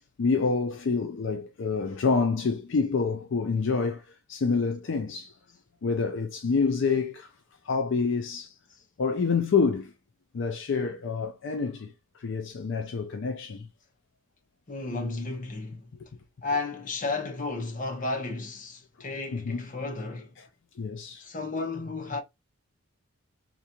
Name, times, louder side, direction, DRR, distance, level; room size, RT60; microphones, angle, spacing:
voice 1, 0.2-5.4 5.8-7.3 7.6-8.5 9.0-9.9 10.3-13.7 19.3-19.7 20.4-20.5 20.8-21.3, left 4 dB, 60° left, 0.4 m, -27 dB
voice 2, 14.7-15.9 16.4-20.3 21.2-22.2, left 3 dB, 35° left, 0.8 m, -33 dB
3.8 x 2.9 x 2.2 m
head